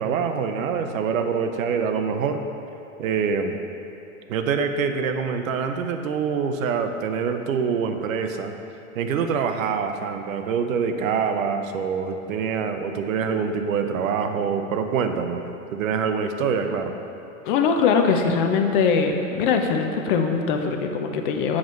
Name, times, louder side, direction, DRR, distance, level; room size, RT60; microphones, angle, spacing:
voice 1, 0.0-2.4 3.0-3.6 4.3-8.5 8.9-16.9, right 6 dB, 75° right, 7 dB, 0.7 m, -25 dB
voice 2, 17.4-21.6, left 5 dB, 40° left, 5 dB, 0.5 m, -21 dB
7.2 x 6.0 x 3.1 m, 2.9 s
hypercardioid pair, 135°, 41 cm